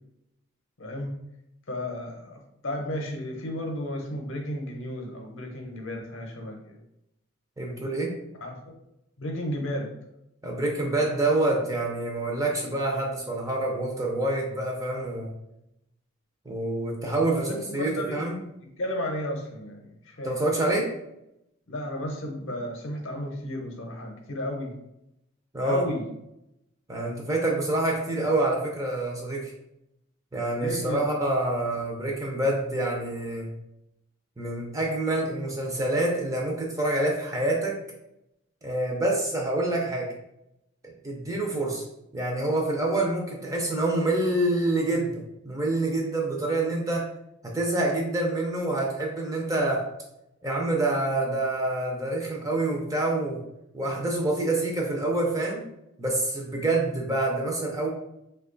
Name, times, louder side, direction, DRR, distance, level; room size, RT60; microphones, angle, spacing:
voice 1, 0.8-1.2 1.7-6.8 8.4-8.6 9.2-9.9 17.2-18.2 18.8-20.4 21.7-24.7 25.6-26.0 30.6-31.0, left 1 dB, 60° left, 2 dB, 0.6 m, -33 dB
voice 2, 7.6-8.1 10.4-15.3 16.5-18.4 20.2-20.9 25.5-25.9 26.9-29.5 30.3-33.5 34.4-37.7 38.6-40.1 40.8-41.8 42.1-47.1 47.4-49.8 50.4-53.4 53.7-55.6 56.0-57.9, right 2 dB, 15° right, -1 dB, 0.4 m, -27 dB
2.8 x 2.3 x 3.7 m, 0.83 s
head